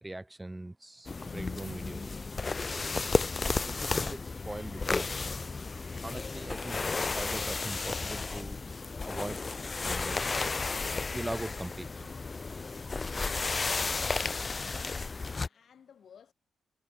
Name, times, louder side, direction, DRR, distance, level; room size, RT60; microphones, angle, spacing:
voice 1, 0.0-2.3 3.4-5.2 5.7-6.8 7.1-8.6 9.0-9.4 9.8-10.6 11.1-12.1, right 1 dB, 15° right, 2.7 m, -41 dB
sound 1, 1.1-15.5, left 4 dB, 40° left, 0.5 m, -33 dB
voice 2, 14.8-16.3, left 8 dB, 65° left, 5.5 m, -58 dB
supercardioid pair, 50°, 0 cm